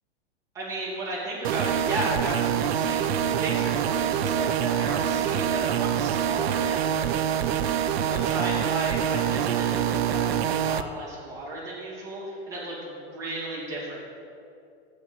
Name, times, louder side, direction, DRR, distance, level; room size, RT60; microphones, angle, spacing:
voice 1, 0.5-14.0, right 1 dB, 10° right, -9 dB, 2.5 m, -34 dB
sound 1, 1.4-10.8, right 9 dB, 75° right, 0.6 m, -25 dB
8.1 x 6.2 x 7.6 m, 2.5 s
supercardioid pair, 170°, 31 cm